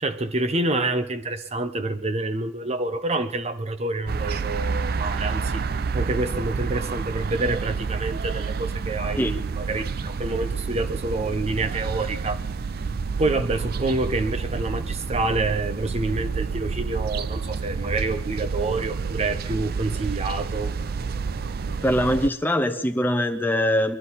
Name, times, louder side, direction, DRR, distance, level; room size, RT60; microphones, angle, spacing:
voice 1, 0.0-12.4 13.1-20.7, right 2 dB, 35° right, 9 dB, 0.9 m, -27 dB
sound 1, 4.1-22.3, right 5 dB, 55° right, 0.5 m, -29 dB
voice 2, 21.8-24.0, equal, 10° left, 6 dB, 0.8 m, -22 dB
23.0 x 12.5 x 4.2 m, 0.75 s
head